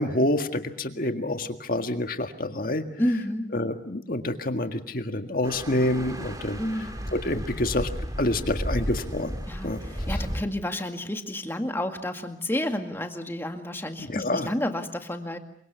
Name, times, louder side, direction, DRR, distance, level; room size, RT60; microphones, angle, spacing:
voice 1, 0.0-2.9 3.5-6.6 7.1-7.9 8.2-9.4 9.6-10.2 14.0-14.5, left 1 dB, 50° left, 7 dB, 1.8 m, -27 dB
voice 2, 3.0-3.5 6.6-6.9 9.5-15.4, left 1 dB, 15° left, 5 dB, 2.0 m, -30 dB
sound 1, 5.4-10.4, equal, 20° right, 3.1 m, -33 dB
28.0 x 25.0 x 6.8 m, 0.62 s
head